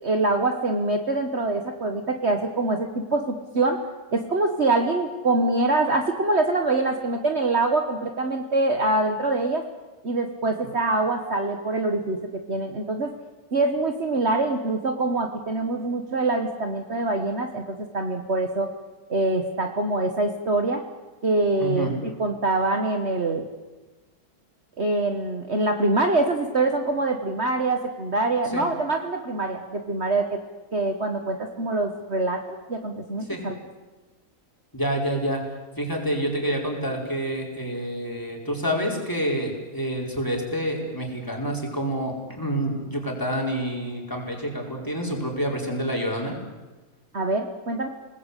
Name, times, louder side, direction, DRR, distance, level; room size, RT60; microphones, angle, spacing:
voice 1, 0.0-3.8 4.1-9.6 10.0-13.1 13.5-18.7 19.1-20.8 21.2-21.9 22.2-23.4 24.8-30.4 30.7-33.6 47.1-47.9, right 2 dB, 45° right, 4 dB, 1.8 m, -24 dB
voice 2, 21.6-21.9 28.5-28.6 33.3-33.4 34.7-35.4 35.8-46.4, right 1 dB, 10° left, 0 dB, 4.9 m, -28 dB
28.5 x 19.5 x 8.4 m, 1.2 s
omnidirectional pair, 1.6 m